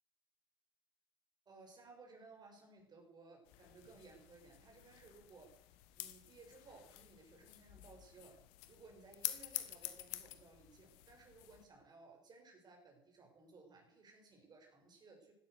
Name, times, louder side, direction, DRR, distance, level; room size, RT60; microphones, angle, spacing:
voice 1, 1.5-5.6 6.0-8.4 8.7-15.3, right 3 dB, 35° right, 2 dB, 6.5 m, -60 dB
sound 1, 3.5-11.6, left 16 dB, 60° left, 1.3 m, -49 dB
17.0 x 12.5 x 6.6 m, 0.78 s
figure-of-eight pair, 55°, 12 cm